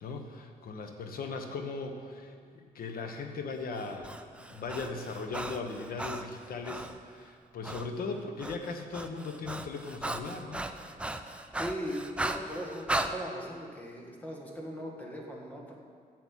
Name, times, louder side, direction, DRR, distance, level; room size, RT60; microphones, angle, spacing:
voice 1, 0.0-10.7, left 4 dB, 70° left, 5 dB, 1.2 m, -38 dB
Breathing, 3.8-7.0 7.6-7.9 8.2-13.1, right 2 dB, 5° right, 0.5 m, -37 dB
voice 2, 11.6-15.8, equal, 10° left, -1 dB, 1.7 m, -39 dB
10.5 x 7.9 x 7.4 m, 2.1 s
wide cardioid pair, 160°, 16 cm